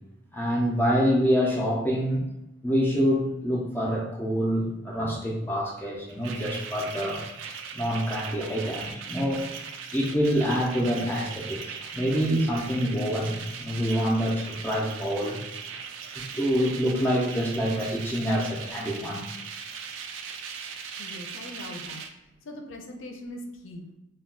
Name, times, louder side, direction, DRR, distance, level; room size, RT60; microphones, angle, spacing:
voice 1, 0.3-2.2 2.6-7.2 7.7-9.4 9.9-15.4 16.2-19.3, equal, 10° left, -2 dB, 0.3 m, -26 dB
sound 1, 6.1-22.1, right 6 dB, 70° right, 0.3 m, -39 dB
voice 2, 21.0-22.0 22.4-23.8, left 1 dB, 75° left, 3 dB, 0.5 m, -40 dB
2.2 x 2.2 x 3.5 m, 0.89 s
head